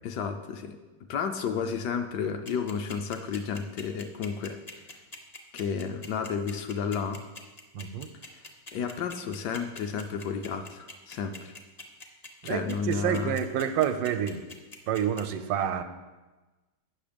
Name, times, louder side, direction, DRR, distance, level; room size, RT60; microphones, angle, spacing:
voice 1, 0.0-0.8 1.1-4.6 5.5-7.2 8.7-11.5 12.4-13.4, left 6 dB, 70° left, 6 dB, 1.1 m, -32 dB
sound 1, 2.5-15.2, left 3 dB, 40° left, 0.6 m, -43 dB
voice 2, 7.7-8.1 12.4-14.4 14.9-15.8, right 9 dB, 80° right, 8 dB, 1.3 m, -28 dB
8.7 x 6.1 x 5.0 m, 1.2 s
omnidirectional pair, 2.0 m